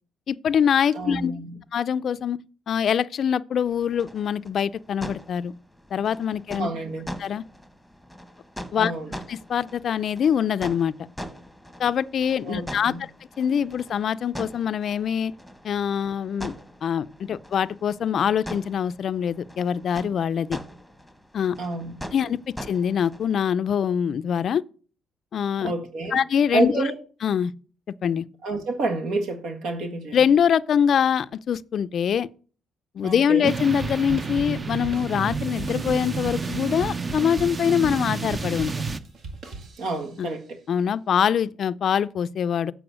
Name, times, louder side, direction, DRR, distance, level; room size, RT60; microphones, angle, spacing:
voice 1, 0.3-1.3 1.7-2.4 2.7-5.5 5.9-6.7 7.2-7.4 8.7-8.9 9.3-10.9 11.8-12.9 13.4-15.3 15.6-16.5 16.8-20.6 21.3-21.6 22.1-22.4 22.7-24.6 25.3-25.7 26.1-26.9 27.2-27.5 28.0-28.2 30.1-32.3 33.0-38.7 40.2-40.3 40.7-42.7, left 8 dB, 60° left, 0.4 m, -24 dB
voice 2, 0.9-1.6 6.6-7.1 8.7-9.1 12.4-13.0 21.6-21.9 25.6-26.2 26.5-26.9 28.4-30.2 33.0-33.5 39.8-40.6, right 3 dB, 80° right, 1.7 m, -28 dB
sound 1, 3.6-23.4, equal, ahead, 1.1 m, -42 dB
sound 2, 33.4-39.0, right 4 dB, 30° right, 0.6 m, -30 dB
sound 3, 33.8-40.2, right 3 dB, 65° right, 1.7 m, -39 dB
7.8 x 4.7 x 6.2 m
cardioid pair, 90°, 0 cm